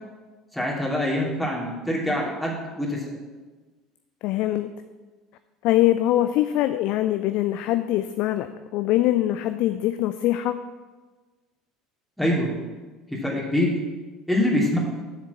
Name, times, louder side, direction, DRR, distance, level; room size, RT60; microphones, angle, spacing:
voice 1, 0.5-3.0 12.2-12.5 13.1-13.7 14.3-14.8, left 1 dB, ahead, -5 dB, 3.0 m, -24 dB
voice 2, 4.2-4.7 5.6-10.6, left 14 dB, 50° left, 10 dB, 0.4 m, -23 dB
7.3 x 7.3 x 7.1 m, 1.3 s
figure-of-eight pair, 65°, 2 cm